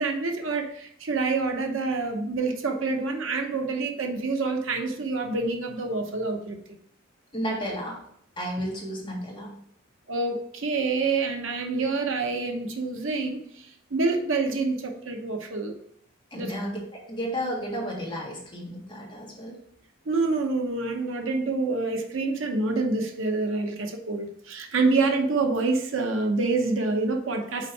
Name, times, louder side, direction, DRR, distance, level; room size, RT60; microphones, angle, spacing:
voice 1, 0.0-6.6 10.1-15.8 16.3-16.5 20.1-27.7, right 3 dB, 70° right, 4 dB, 0.9 m, -27 dB
voice 2, 7.3-8.0 8.4-9.5 16.3-16.8 17.1-19.6, equal, 25° left, -3 dB, 1.8 m, -32 dB
5.6 x 4.5 x 4.6 m, 0.68 s
head